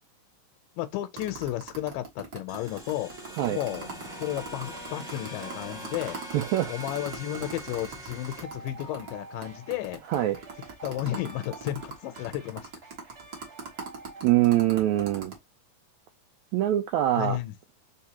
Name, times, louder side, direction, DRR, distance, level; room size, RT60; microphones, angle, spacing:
voice 1, 0.8-3.9 4.2-6.2 6.7-10.0 10.8-12.7 17.2-17.5, left 14 dB, 80° left, 2.2 m, -33 dB
sound 1, 1.2-9.1 9.4-9.5 9.7-15.4, right 4 dB, 50° right, 1.2 m, -40 dB
sound 2, 2.5-8.4, right 1 dB, 5° right, 0.5 m, -43 dB
sound 3, 3.7-14.5, right 3 dB, 65° right, 0.6 m, -49 dB
voice 2, 6.3-6.7 10.1-10.4 14.2-15.3 16.5-17.4, right 13 dB, 85° right, 1.6 m, -23 dB
4.8 x 3.4 x 2.8 m
omnidirectional pair, 3.9 m